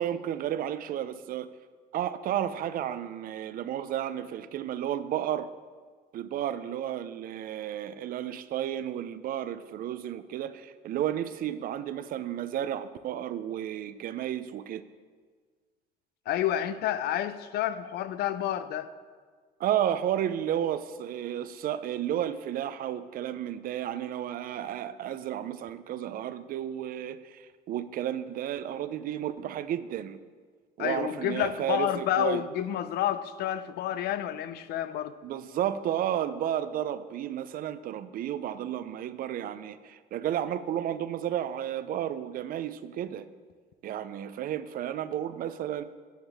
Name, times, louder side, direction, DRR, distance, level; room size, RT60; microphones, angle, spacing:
voice 1, 0.0-1.5 1.9-5.5 6.1-14.8 19.6-30.2 30.8-32.4 35.2-43.3 43.8-45.9, right 10 dB, 60° right, 13 dB, 0.4 m, -32 dB
voice 2, 16.3-18.9 30.8-35.2, left 11 dB, 70° left, 13 dB, 0.5 m, -29 dB
10.0 x 7.2 x 3.4 m, 1.6 s
cardioid pair, 110°, 17 cm